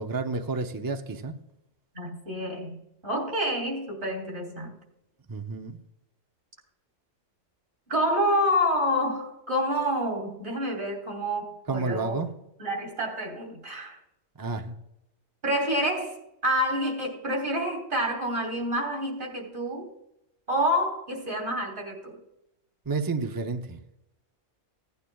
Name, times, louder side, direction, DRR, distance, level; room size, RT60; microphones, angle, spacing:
voice 1, 0.0-1.3 5.3-5.8 11.7-12.3 14.4-14.8 22.9-23.8, right 4 dB, 30° right, 5 dB, 0.4 m, -30 dB
voice 2, 2.0-2.8 3.0-4.8 7.9-12.2 12.6-14.0 15.4-16.2 16.4-19.9 20.5-22.2, equal, 50° right, 1 dB, 3.4 m, -28 dB
16.5 x 9.4 x 2.3 m, 0.86 s
omnidirectional pair, 1.3 m